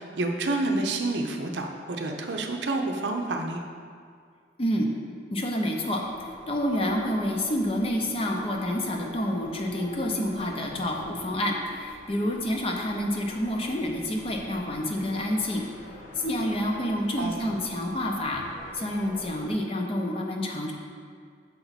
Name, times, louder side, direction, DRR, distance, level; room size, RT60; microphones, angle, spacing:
voice 1, 0.0-3.6 17.2-17.5, right 2 dB, 75° right, 3 dB, 0.6 m, -29 dB
voice 2, 5.3-15.6 16.1-18.4 18.7-20.7, left 1 dB, 30° left, 1 dB, 0.6 m, -28 dB
sound 1, 6.0-19.5, left 1 dB, 90° left, 1.3 m, -47 dB
7.0 x 4.5 x 4.0 m, 2.1 s
head